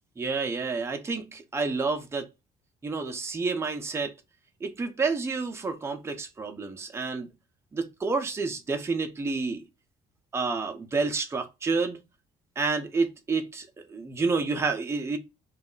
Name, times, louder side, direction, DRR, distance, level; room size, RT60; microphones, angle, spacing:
voice 1, 0.2-2.3 2.8-4.1 4.6-7.3 7.7-9.6 10.3-12.0 12.6-15.2, right 4 dB, 15° right, 0.5 m, -29 dB
2.3 x 2.0 x 3.7 m
cardioid pair, 110°, 17 cm